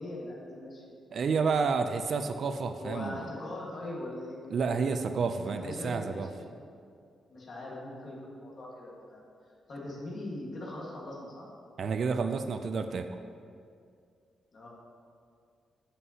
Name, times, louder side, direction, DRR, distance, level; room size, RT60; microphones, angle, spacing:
voice 1, 0.0-1.0 2.8-4.4 5.4-6.3 6.6-6.7 7.3-9.2 9.7-11.5 14.5-14.7, left 1 dB, 40° left, -4 dB, 1.5 m, -41 dB
voice 2, 1.1-3.3 4.5-6.3 11.8-13.1, right 5 dB, 50° right, 8 dB, 0.3 m, -30 dB
8.1 x 7.5 x 2.8 m, 2.3 s
wide cardioid pair, 165°, 0 cm